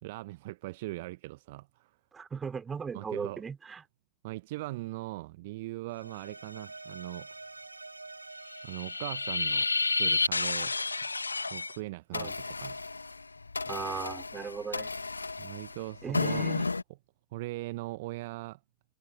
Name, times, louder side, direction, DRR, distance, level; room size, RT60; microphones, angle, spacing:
voice 1, 0.0-2.0 2.9-3.4 4.2-7.3 8.6-10.8 11.5-12.8 15.4-16.5 17.3-18.6, right 19 dB, 50° right, 1.0 m, -40 dB
voice 2, 2.1-3.8 12.1-12.3 13.7-14.9 16.0-16.7, right 6 dB, 15° right, 4.2 m, -37 dB
sound 1, 5.9-11.2, right 3 dB, 80° right, 6.5 m, -48 dB
sound 2, 8.5-11.8 12.1-16.8, left 3 dB, 80° left, 1.5 m, -31 dB
figure-of-eight pair, 90°, 0 cm